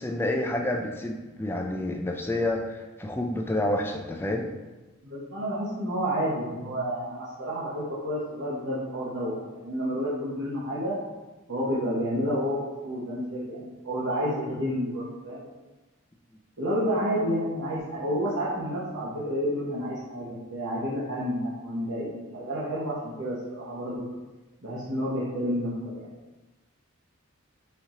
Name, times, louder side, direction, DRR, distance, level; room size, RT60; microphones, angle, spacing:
voice 1, 0.0-4.5, left 1 dB, 10° left, 2 dB, 0.3 m, -29 dB
voice 2, 5.0-11.0 11.5-15.5 16.6-24.0 24.6-26.1, equal, 65° right, -9 dB, 0.9 m, -30 dB
4.4 x 2.7 x 3.7 m, 1.2 s
head